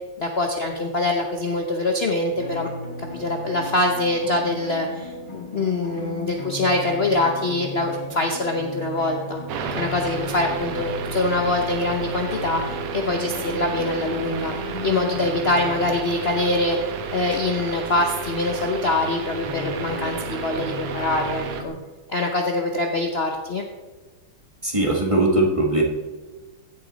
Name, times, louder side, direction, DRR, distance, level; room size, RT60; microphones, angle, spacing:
voice 1, 0.2-2.7 3.0-9.4 9.7-14.5 14.8-21.7 22.1-23.6, left 2 dB, 70° left, 2 dB, 0.5 m, -24 dB
sound 1, 2.3-16.0 17.3-17.4 17.8-17.9 18.4-18.5 19.4-21.7, left 1 dB, 15° left, 3.8 m, -35 dB
sound 2, 9.5-21.6, right 6 dB, 90° right, 2.0 m, -32 dB
voice 2, 24.6-25.8, right 1 dB, 20° right, 0 dB, 1.2 m, -20 dB
15.5 x 7.1 x 4.1 m, 1.3 s
omnidirectional pair, 2.4 m